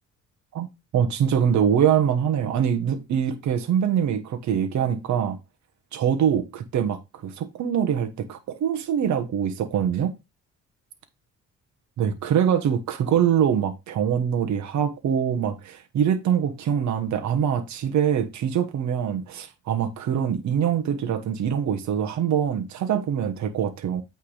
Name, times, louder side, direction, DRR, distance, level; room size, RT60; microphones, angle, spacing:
voice 1, 0.9-5.4 5.9-10.1 12.0-24.0, right 8 dB, 70° right, 1.1 m, -24 dB
8.4 x 3.5 x 4.9 m
cardioid pair, 90°, 30 cm